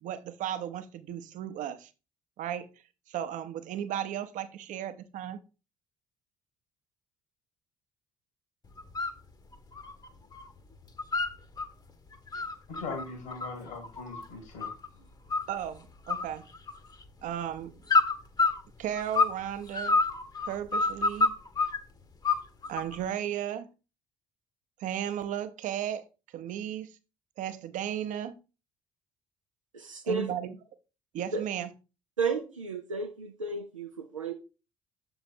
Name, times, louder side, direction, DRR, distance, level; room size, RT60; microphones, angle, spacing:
voice 1, 0.0-1.9 2.4-2.7 3.1-5.4 15.5-16.4 17.2-17.7 18.8-20.0 20.5-21.3 22.7-23.7 24.8-26.0 26.3-26.9 27.4-28.4 30.0-30.5 31.1-31.7, right 10 dB, 55° right, 0.7 m, -35 dB
sound 1, 8.8-9.2 9.5-10.5 10.7-11.7 12.1-14.9 15.3-15.8 16.1-17.1 17.9-19.4 19.7-21.8 22.2-23.0, left 3 dB, 25° left, 0.9 m, -28 dB
voice 2, 12.7-15.1, left 4 dB, 70° left, 1.9 m, -40 dB
voice 3, 29.7-30.3 31.3-31.4 32.2-34.3, right 4 dB, 90° right, 0.4 m, -32 dB
6.8 x 3.9 x 4.3 m
figure-of-eight pair, 50°, 16 cm